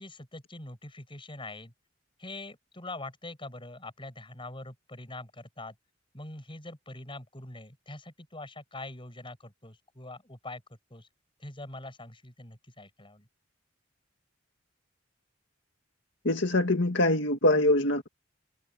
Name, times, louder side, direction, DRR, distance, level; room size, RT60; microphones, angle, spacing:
voice 1, 0.0-1.7 2.2-5.7 6.1-10.6 10.9-11.1 11.4-13.3, left 2 dB, 25° left, 7.7 m, -43 dB
voice 2, 16.2-18.1, left 1 dB, 65° left, 2.0 m, -24 dB
head